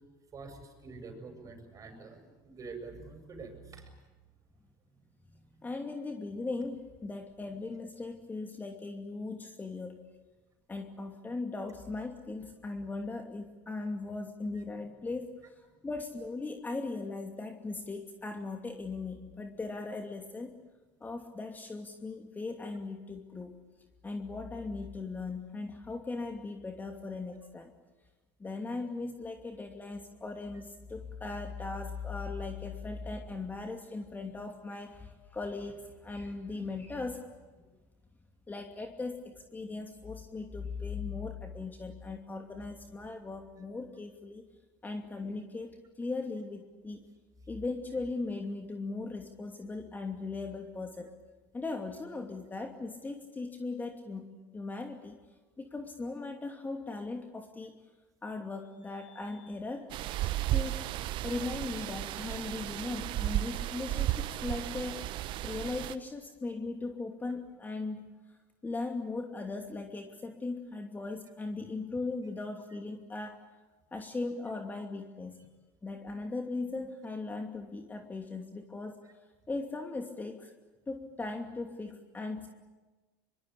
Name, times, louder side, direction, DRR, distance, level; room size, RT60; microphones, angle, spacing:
voice 1, 0.3-3.9, right 4 dB, 30° right, 6 dB, 7.5 m, -46 dB
voice 2, 5.6-10.0 10.7-20.5 21.0-23.6 24.0-27.7 28.4-37.2 38.5-44.4 44.8-47.1 47.5-51.1 51.5-54.3 54.5-55.2 55.6-57.7 58.2-59.9 60.5-60.9 61.2-68.1 68.6-73.4 73.9-75.4 75.8-79.0 79.5-80.5 80.9-82.5, left 3 dB, 15° left, 4 dB, 2.7 m, -38 dB
sound 1, 59.9-65.9, right 15 dB, 50° right, 1.2 m, -34 dB
25.0 x 23.5 x 8.6 m, 1.2 s
hypercardioid pair, 80°, 11 cm